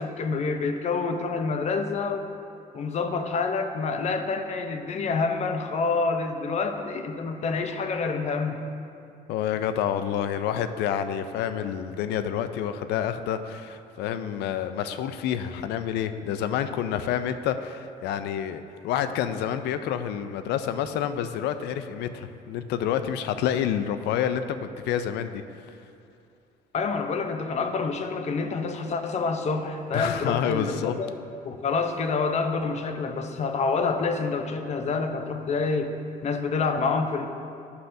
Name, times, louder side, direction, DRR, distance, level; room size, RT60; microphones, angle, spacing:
voice 1, 0.0-2.3 2.7-8.7 26.7-31.2 31.4-35.9 36.2-37.3, left 4 dB, 40° left, 6 dB, 0.6 m, -27 dB
voice 2, 9.3-25.4 29.9-31.0, left 9 dB, 80° left, 10 dB, 0.4 m, -28 dB
11.5 x 5.6 x 2.6 m, 2.6 s
cardioid pair, 110°, 17 cm